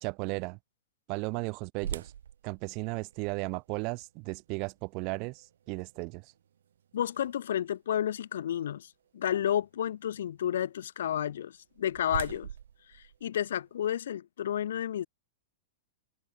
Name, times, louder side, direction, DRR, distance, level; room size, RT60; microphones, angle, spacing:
voice 1, 0.0-0.6 1.1-2.1 2.4-6.3, right 30 dB, 30° right, 0.5 m, -35 dB
sound 1, 1.8-7.8 8.3-8.4 9.0-9.2 11.3-14.0, right 9 dB, 90° right, 0.6 m, -44 dB
voice 2, 6.9-12.5 12.9-15.1, left 10 dB, 70° left, 0.8 m, -31 dB
supercardioid pair, 175°, 0 cm